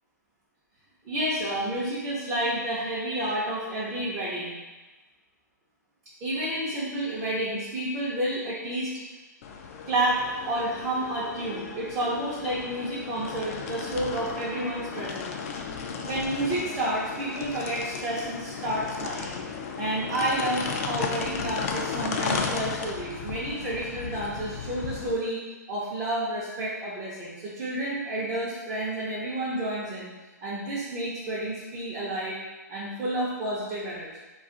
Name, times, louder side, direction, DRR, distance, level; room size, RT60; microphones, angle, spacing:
voice 1, 1.0-4.5 6.2-8.9 9.9-15.3 16.0-19.4 19.8-25.4 25.7-30.1 30.4-32.4 32.7-34.2, right 1 dB, 25° right, -8 dB, 0.7 m, -30 dB
sound 1, 9.4-25.1, left 5 dB, 50° left, 0.4 m, -34 dB
2.4 x 2.4 x 3.7 m, 1.2 s
hypercardioid pair, 130°, 10 cm